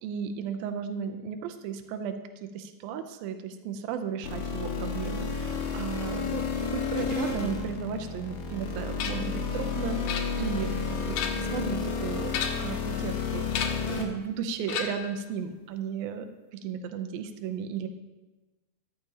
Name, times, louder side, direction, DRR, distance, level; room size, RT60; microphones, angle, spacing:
voice 1, 0.0-17.9, right 7 dB, 85° right, 7 dB, 2.1 m, -35 dB
sound 1, 4.2-14.0, left 5 dB, 65° left, 2.3 m, -31 dB
sound 2, 9.0-9.3 10.1-10.7 11.0-11.6 12.3-12.8 13.5-13.9 14.7-15.2, left 7 dB, 80° left, 1.8 m, -33 dB
13.5 x 11.5 x 2.8 m, 1.1 s
omnidirectional pair, 4.9 m